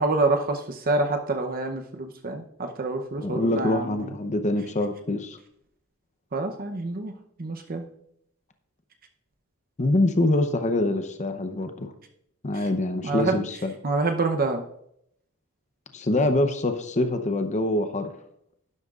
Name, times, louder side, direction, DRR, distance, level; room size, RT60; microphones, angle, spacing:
voice 1, 0.0-4.0 6.3-7.1 7.4-7.9 13.0-13.4 13.8-14.6, right 3 dB, 40° right, 5 dB, 0.7 m, -27 dB
voice 2, 3.2-5.4 9.8-11.9 12.4-13.7 15.9-18.1, left 1 dB, 35° left, 7 dB, 0.7 m, -25 dB
11.5 x 11.0 x 2.4 m, 0.73 s
head